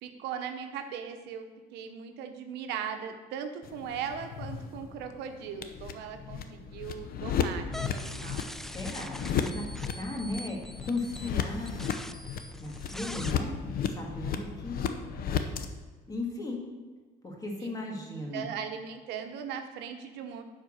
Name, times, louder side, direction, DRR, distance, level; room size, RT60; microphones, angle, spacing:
voice 1, 0.0-8.5 17.6-17.7 18.3-20.4, right 7 dB, 85° right, 6 dB, 0.9 m, -39 dB
sound 1, 3.6-15.7, left 7 dB, 60° left, 0.8 m, -34 dB
sound 2, 7.7-13.3, equal, ahead, 0.4 m, -43 dB
voice 2, 8.7-9.7 10.0-11.8 12.6-13.6 13.9-15.0 16.1-16.7 17.2-18.5, left 2 dB, 20° left, -1 dB, 2.2 m, -36 dB
10.5 x 4.4 x 6.4 m, 1.3 s
cardioid pair, 110°, 17 cm